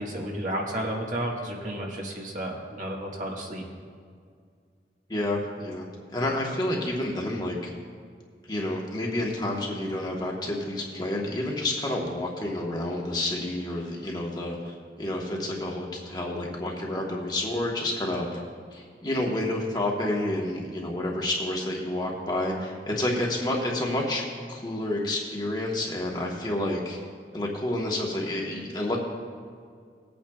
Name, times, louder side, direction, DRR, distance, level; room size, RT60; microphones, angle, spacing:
voice 1, 0.0-3.7, right 1 dB, 45° right, -1 dB, 1.6 m, -32 dB
voice 2, 5.1-5.8 6.1-7.7 8.5-18.4 18.7-24.2 24.5-27.0 27.3-29.0, left 1 dB, 25° left, -2 dB, 1.3 m, -29 dB
19.5 x 8.7 x 2.4 m, 2.1 s
head